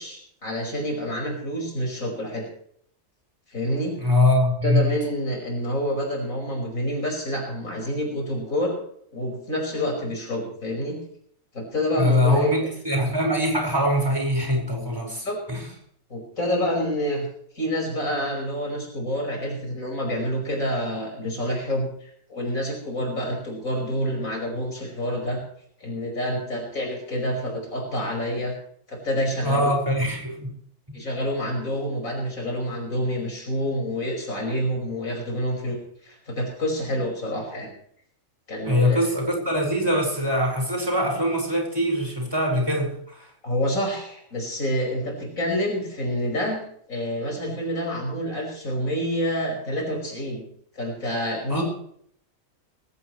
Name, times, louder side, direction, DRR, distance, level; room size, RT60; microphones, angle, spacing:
voice 1, 0.0-2.4 3.5-3.9 4.6-8.8 9.1-11.0 11.5-12.5 15.1-15.4 16.1-17.3 17.5-25.4 25.8-28.5 28.9-29.7 30.9-37.7 38.5-39.0 43.4-46.6 46.9-50.4 50.8-51.6, equal, 85° left, 0 dB, 5.9 m, -28 dB
voice 2, 4.0-4.9 12.0-15.2 15.5-15.6 29.4-30.5 30.9-31.0 38.6-43.3 51.5-51.6, left 1 dB, 15° right, 1 dB, 5.4 m, -23 dB
21.0 x 17.0 x 3.2 m, 0.65 s
omnidirectional pair, 1.4 m